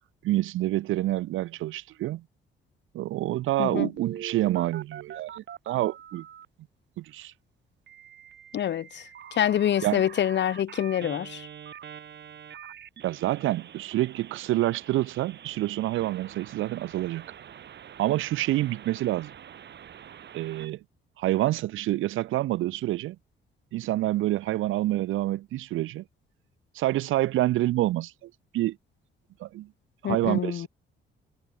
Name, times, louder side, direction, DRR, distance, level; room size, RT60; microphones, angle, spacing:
voice 1, 0.2-2.2 2.9-6.2 7.0-7.3 9.8-10.0 13.0-17.2 18.0-19.3 20.3-20.8 21.2-23.2 23.7-26.0 26.7-28.8 29.4-29.7 30.0-30.7, right 15 dB, 85° right, 1.3 m, -27 dB
voice 2, 3.6-3.9 8.5-9.0 9.4-11.5 30.0-30.7, left 10 dB, 65° left, 1.6 m, -26 dB
Telephone, 4.0-6.5 7.9-20.7, right 9 dB, 60° right, 5.8 m, -45 dB
cardioid pair, 90°, 20 cm